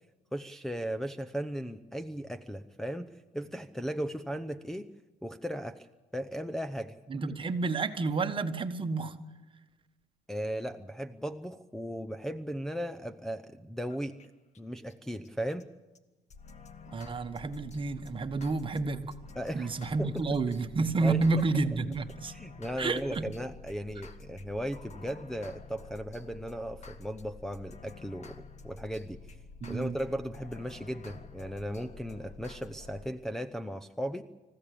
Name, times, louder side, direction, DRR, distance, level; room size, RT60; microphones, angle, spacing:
voice 1, 0.3-4.9 5.2-5.9 6.1-7.0 10.3-14.2 14.6-15.7 19.4-19.7 20.0-20.2 21.0-21.2 22.3-29.2 29.7-34.2, equal, ahead, 6 dB, 0.8 m, -36 dB
voice 2, 7.1-9.1 16.9-19.1 19.5-22.3 22.8-23.3 29.6-30.0, right 3 dB, 30° right, 9 dB, 1.4 m, -30 dB
sound 1, 13.9-14.3 14.5-14.6 14.9-15.0 15.2-15.3 15.6-15.7 15.9-16.0 16.3-33.1, left 4 dB, 40° left, 1.7 m, -49 dB
26.0 x 15.5 x 8.5 m, 1.1 s
cardioid pair, 110°, 17 cm